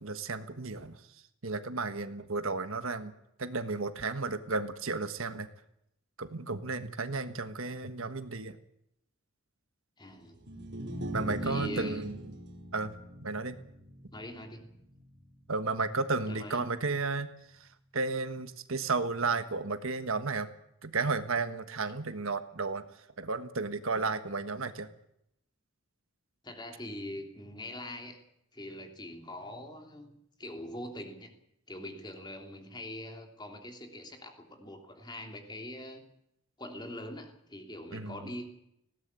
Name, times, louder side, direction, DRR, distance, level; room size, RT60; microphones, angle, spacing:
voice 1, 0.0-1.0 1.4-3.1 3.4-5.5 6.2-8.6 11.1-12.2 12.7-12.9 13.2-13.6 15.5-17.3 17.9-20.5 20.8-22.8 23.2-24.9 37.9-38.1, right 3 dB, 70° right, 10 dB, 1.4 m, -33 dB
voice 2, 10.0-10.4 11.4-12.1 14.1-14.8 16.3-16.7 26.4-28.2 28.5-31.3 31.7-36.1 36.6-38.5, left 1 dB, 20° left, 4 dB, 3.0 m, -43 dB
sound 1, 10.3-16.7, right 1 dB, 50° right, 3.4 m, -41 dB
19.5 x 17.5 x 8.3 m, 0.77 s
head